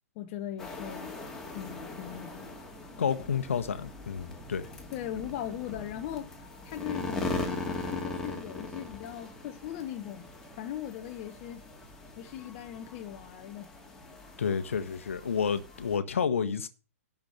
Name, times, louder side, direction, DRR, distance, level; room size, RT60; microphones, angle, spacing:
voice 1, 0.1-1.1 1.5-2.6 4.9-10.3 10.6-11.7 12.2-13.7, left 11 dB, 35° left, 1.0 m, -39 dB
sound 1, 0.6-16.0, left 2 dB, 5° left, 2.4 m, -40 dB
voice 2, 3.0-4.7 14.4-16.7, left 6 dB, 60° left, 1.3 m, -30 dB
11.5 x 5.0 x 7.6 m
figure-of-eight pair, 115°, 8 cm